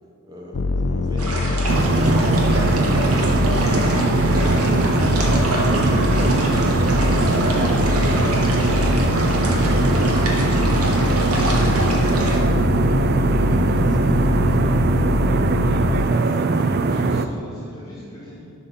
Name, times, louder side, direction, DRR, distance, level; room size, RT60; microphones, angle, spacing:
voice 1, 0.2-4.3, equal, 20° right, -1 dB, 1.2 m, -39 dB
sound 1, 0.5-16.1, left 3 dB, 60° left, 0.4 m, -23 dB
sound 2, 1.2-12.4, right 1 dB, 85° right, 1.4 m, -27 dB
sound 3, 1.7-17.3, right 3 dB, 45° right, 0.4 m, -20 dB
voice 2, 15.5-18.5, equal, 15° left, -11 dB, 2.4 m, -41 dB
11.0 x 5.5 x 5.7 m, 2.5 s
head